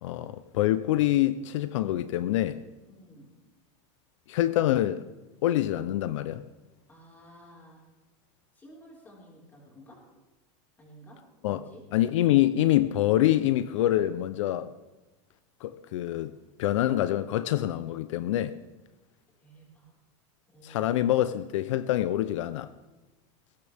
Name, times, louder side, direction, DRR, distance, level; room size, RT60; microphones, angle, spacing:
voice 1, 0.0-2.6 4.3-5.0 5.4-6.4 11.4-11.6 11.9-14.7 15.6-16.3 16.6-18.6 20.6-22.7, left 13 dB, 70° left, 0.7 m, -25 dB
voice 2, 2.9-3.3 6.9-7.8 8.5-10.0 10.8-11.2 11.5-11.8 19.4-19.9 20.5-20.9, right 1 dB, 10° left, 4.9 m, -52 dB
21.0 x 17.0 x 3.6 m
supercardioid pair, 175°, 16 cm